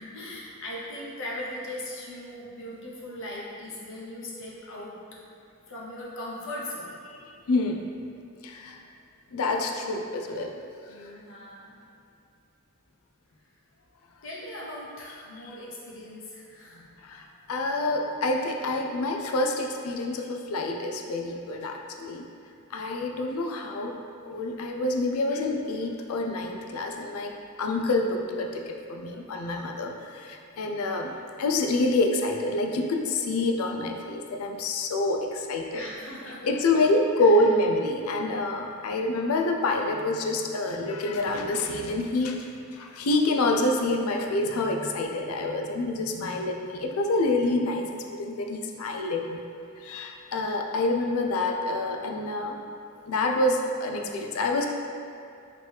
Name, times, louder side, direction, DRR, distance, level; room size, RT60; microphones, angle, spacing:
voice 1, 0.0-4.9 5.7-7.0 9.5-10.0 10.9-11.8 14.2-16.8 35.7-36.6 37.2-37.5 38.8-39.0 50.3-50.5, left 1 dB, 60° left, -5 dB, 0.8 m, -39 dB
voice 2, 7.5-7.8 8.4-8.7 9.3-10.5 17.1-22.2 22.7-24.0 24.3-27.3 27.6-31.1 31.4-35.8 36.4-42.5 42.8-47.9 48.2-49.4 49.8-52.6 53.1-54.7, left 2 dB, 85° left, 2 dB, 0.4 m, -27 dB
4.4 x 3.0 x 3.3 m, 2.5 s
head